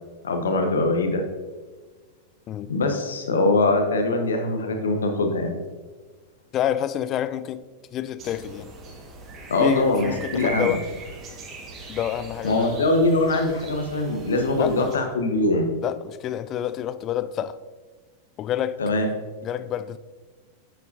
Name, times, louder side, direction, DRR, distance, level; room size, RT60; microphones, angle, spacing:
voice 1, 0.2-1.2 2.7-5.5 9.5-10.7 12.4-15.7 18.8-19.1, left 2 dB, 65° left, 1.2 m, -22 dB
voice 2, 6.5-7.6 7.9-8.7 9.6-10.8 11.9-12.8 14.6-14.9 15.8-17.6 18.4-18.8 19.4-20.0, left 10 dB, 30° left, 0.4 m, -28 dB
sound 1, 8.2-15.0, right 3 dB, 30° right, 1.7 m, -39 dB
8.9 x 8.2 x 2.8 m
figure-of-eight pair, 90°, 0 cm